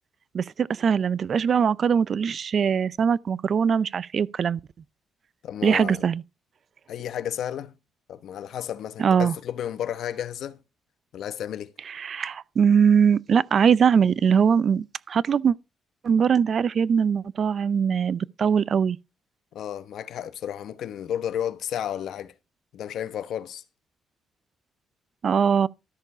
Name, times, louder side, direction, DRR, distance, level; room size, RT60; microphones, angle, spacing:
voice 1, 0.3-4.6 5.6-6.2 9.0-9.3 11.9-15.6 16.0-19.0 25.2-25.7, right 7 dB, 50° right, 0.5 m, -21 dB
voice 2, 5.4-6.0 6.9-7.7 8.1-10.6 11.1-11.7 19.5-22.3 22.7-23.6, left 10 dB, 70° left, 1.0 m, -32 dB
13.0 x 6.7 x 5.0 m
cardioid pair, 90°, 0 cm